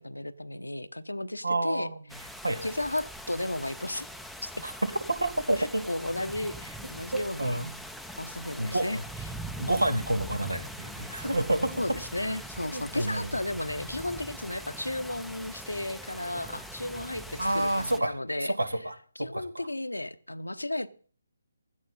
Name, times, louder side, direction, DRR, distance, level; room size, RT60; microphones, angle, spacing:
voice 1, 0.0-2.3 2.6-4.1 4.4-4.6 5.6-7.7 8.2-9.0 11.8-18.5 19.2-20.9, left 1 dB, 80° left, 12 dB, 0.9 m, -34 dB
voice 2, 1.4-1.9 2.4-2.7 4.6-4.7 5.2-5.8 7.1-7.7 8.6-9.0 9.6-11.7 12.7-13.3 17.4-18.1 18.4-19.7, right 1 dB, 80° right, 11 dB, 2.0 m, -29 dB
sound 1, 2.1-18.0, equal, ahead, 0.6 m, -42 dB
16.0 x 11.5 x 4.1 m, 0.43 s
figure-of-eight pair, 145°, 0 cm